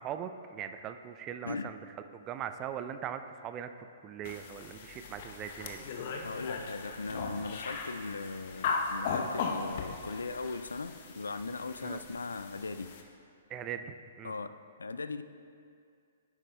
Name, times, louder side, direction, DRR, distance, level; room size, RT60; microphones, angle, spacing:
voice 1, 0.0-1.8 2.1-3.7 4.0-5.8 11.8-12.0 13.5-14.3, right 9 dB, 25° right, 9 dB, 0.3 m, -40 dB
sound 1, 4.2-13.0, left 4 dB, 45° left, 0.7 m, -38 dB
voice 2, 6.2-12.9 14.2-14.5 14.8-15.2, left 3 dB, 75° left, 12 dB, 0.3 m, -38 dB
10.5 x 8.1 x 2.2 m, 2.3 s
figure-of-eight pair, 115°, 0 cm